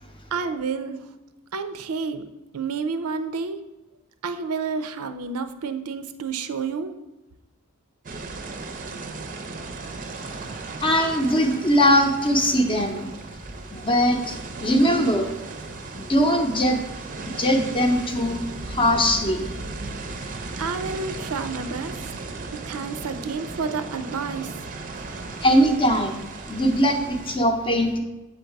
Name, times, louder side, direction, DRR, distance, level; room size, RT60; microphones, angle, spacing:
voice 1, 0.3-1.0 1.5-2.2 2.5-3.6 4.2-6.9 20.6-22.1 22.5-24.5, right 5 dB, 80° right, 10 dB, 0.5 m, -30 dB
sound 1, 8.0-27.4, right 3 dB, 40° right, 0.6 m, -36 dB
voice 2, 10.8-13.1 13.7-15.3 15.9-16.8 17.2-19.6 20.2-20.3 25.4-26.2 26.5-28.0, equal, 25° left, 4 dB, 0.7 m, -21 dB
7.2 x 4.0 x 4.6 m, 1.0 s
head